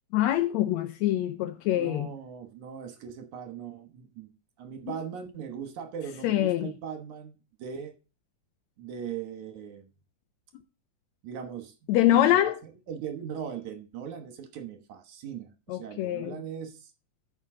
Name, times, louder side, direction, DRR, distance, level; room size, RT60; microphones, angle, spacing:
voice 1, 0.1-2.1 6.2-6.7 11.9-12.6 15.7-16.4, left 13 dB, 75° left, 1.7 m, -24 dB
voice 2, 1.7-4.3 4.6-7.3 7.6-7.9 8.8-9.9 11.2-11.7 12.1-12.5 12.9-16.9, right 7 dB, 70° right, 2.5 m, -39 dB
13.5 x 6.7 x 3.8 m
omnidirectional pair, 3.7 m